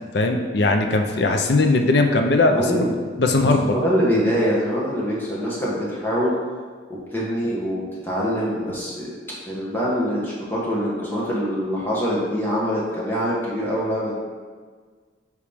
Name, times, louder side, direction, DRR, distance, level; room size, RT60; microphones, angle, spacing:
voice 1, 0.1-2.9 3.2-3.8, left 2 dB, 60° left, 4 dB, 0.6 m, -19 dB
voice 2, 2.5-2.9 3.7-6.3 7.1-9.1 9.4-14.2, equal, 10° left, -7 dB, 1.4 m, -24 dB
9.6 x 3.2 x 3.5 m, 1.6 s
head